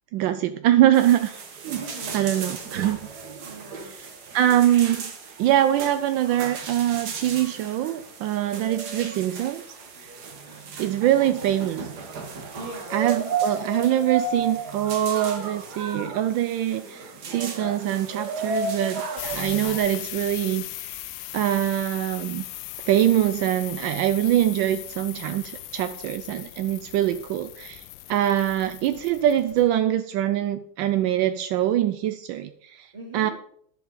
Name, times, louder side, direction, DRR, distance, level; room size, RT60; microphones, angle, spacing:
voice 1, 0.1-1.3 1.6-1.8 2.1-3.0 3.8-4.1 4.3-5.0 5.4-9.6 10.0-10.1 10.8-11.9 12.9-21.0 21.3-22.4 22.8-27.8 28.1-33.3, right 12 dB, 80° right, 10 dB, 1.3 m, -23 dB
sound 1, 0.9-19.8, right 4 dB, 60° right, 1.8 m, -34 dB
voice 2, 1.8-2.1 3.4-3.9 10.4-10.8 12.5-13.0 32.9-33.3, right 2 dB, 20° right, -2 dB, 2.9 m, -40 dB
sound 2, 19.2-29.7, left 15 dB, 80° left, 1.3 m, -38 dB
10.5 x 7.7 x 3.8 m, 0.66 s
omnidirectional pair, 2.1 m